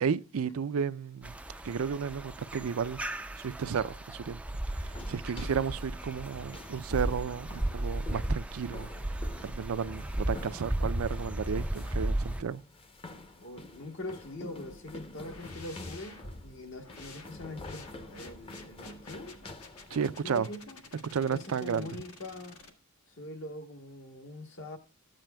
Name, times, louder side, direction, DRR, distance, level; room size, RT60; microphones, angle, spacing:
voice 1, 0.0-1.4 1.6-4.4 4.7-12.6 19.9-20.5 21.1-21.9, right 6 dB, 70° right, 0.4 m, -33 dB
sound 1, 1.2-12.4, right 1 dB, 5° right, 0.3 m, -35 dB
sound 2, 4.8-20.2, left 2 dB, 25° left, 0.7 m, -48 dB
voice 2, 13.4-19.4 20.2-20.8 21.3-22.6 23.1-24.8, left 1 dB, 60° left, 1.1 m, -43 dB
sound 3, 15.2-22.7, left 4 dB, 80° left, 1.6 m, -52 dB
13.0 x 8.9 x 2.2 m
head